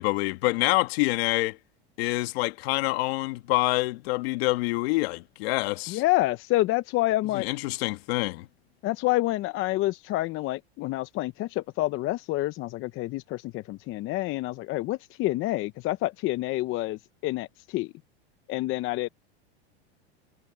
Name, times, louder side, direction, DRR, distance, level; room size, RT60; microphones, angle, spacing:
voice 1, 0.0-1.6 2.0-6.0 7.3-8.5, left 22 dB, 65° left, 2.0 m, -26 dB
voice 2, 5.9-7.5 8.8-17.9 18.5-19.1, left 17 dB, 40° left, 0.8 m, -28 dB
supercardioid pair, 125°, 32 cm